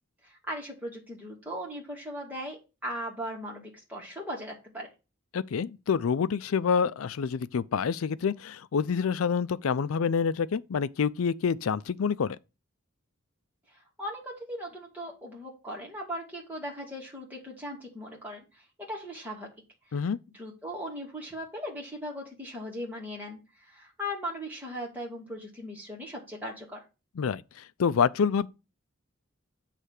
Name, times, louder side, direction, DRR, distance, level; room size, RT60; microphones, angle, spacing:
voice 1, 0.2-4.9 13.7-18.4 18.9-19.5 20.4-23.4 23.6-26.8, equal, 10° right, 2.3 m, -38 dB
voice 2, 5.3-12.4 19.9-20.2 27.2-28.5, left 6 dB, 85° left, 0.4 m, -27 dB
8.1 x 3.3 x 6.4 m
head